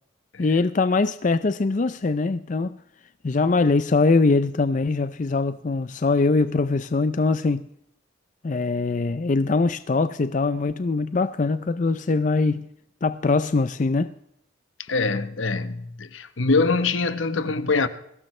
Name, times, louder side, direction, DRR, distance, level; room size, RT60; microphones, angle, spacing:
voice 1, 0.4-2.8 3.2-7.6 8.4-12.7 13.0-14.1, left 3 dB, 40° left, 0.4 m, -22 dB
voice 2, 14.9-17.9, left 3 dB, 80° left, 1.0 m, -23 dB
21.0 x 16.5 x 3.2 m
head